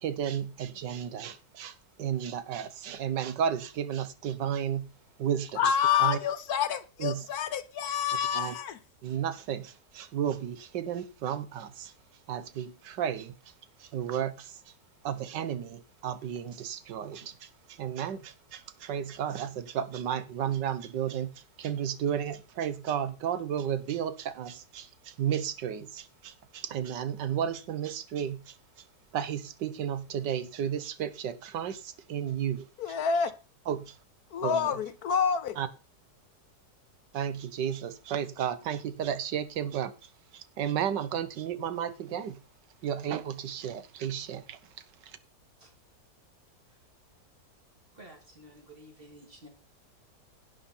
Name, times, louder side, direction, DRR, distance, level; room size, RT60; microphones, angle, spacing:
voice 1, 0.0-4.9 5.2-5.6 6.0-6.2 7.0-7.3 8.3-8.5 9.0-11.9 12.3-13.3 13.8-14.6 15.0-28.5 29.1-33.0 33.7-34.0 34.4-34.8 35.6-35.7 37.1-42.4 42.8-44.6 45.0-45.2, right 9 dB, 90° right, 1.6 m, -33 dB
voice 2, 5.6-8.8 32.8-33.3 34.3-35.6, left 7 dB, 65° left, 1.2 m, -28 dB
voice 3, 47.9-49.5, right 1 dB, 30° right, 2.8 m, -51 dB
11.0 x 9.4 x 4.3 m
omnidirectional pair, 1.8 m